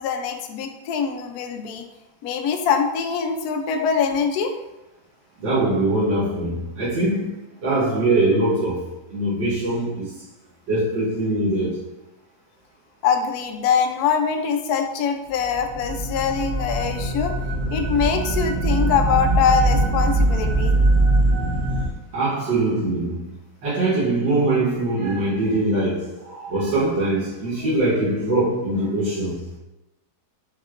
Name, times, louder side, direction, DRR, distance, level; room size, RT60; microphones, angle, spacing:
voice 1, 0.0-1.9 2.2-4.5 13.0-17.3 17.7-20.7, left 6 dB, 70° left, 0.9 m, -23 dB
voice 2, 5.4-10.2 10.7-11.8 22.1-23.3 23.6-29.5, right 2 dB, 85° right, 1.9 m, -22 dB
sound 1, 15.4-21.9, right 2 dB, 55° right, 1.0 m, -21 dB
5.3 x 3.6 x 2.5 m
omnidirectional pair, 1.9 m